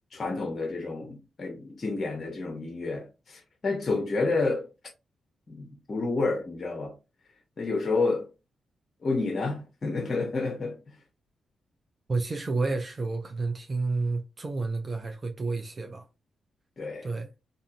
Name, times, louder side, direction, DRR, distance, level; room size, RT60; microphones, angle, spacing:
voice 1, 0.1-4.7 5.5-6.9 7.6-8.3 9.0-10.8 16.8-17.1, left 3 dB, 45° left, 0.7 m, -29 dB
voice 2, 12.1-16.1 17.0-17.3, right 3 dB, 40° right, 0.5 m, -30 dB
2.6 x 2.6 x 2.5 m
supercardioid pair, 50°, 0 cm